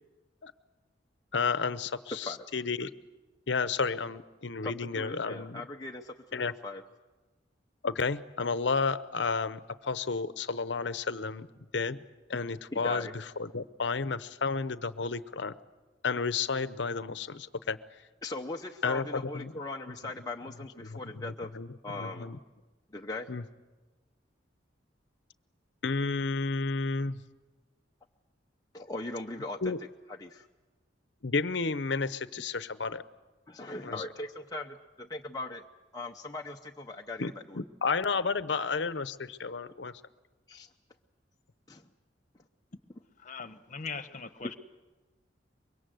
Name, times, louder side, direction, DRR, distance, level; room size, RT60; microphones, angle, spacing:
voice 1, 1.3-2.9 3.5-5.6 6.3-6.5 7.8-11.5 11.7-12.0 12.3-15.5 16.0-17.8 18.8-19.5 20.8-21.7 22.0-22.4 23.3-23.4 25.8-27.2 29.6-29.8 31.2-33.0 33.8-34.0 37.2-39.9, left 4 dB, 70° left, 14 dB, 0.8 m, -32 dB
voice 2, 4.6-6.8 12.7-13.1 18.2-21.5 21.8-22.3 22.9-23.3 28.7-29.7 30.1-30.5 33.5-34.7 35.1-35.6 35.9-37.2 37.5-37.6 40.5-40.7 41.7-41.8, left 2 dB, 20° left, 1 dB, 0.7 m, -39 dB
voice 3, 43.2-44.6, left 4 dB, 45° left, 11 dB, 1.2 m, -40 dB
24.5 x 22.5 x 7.8 m, 1.2 s
head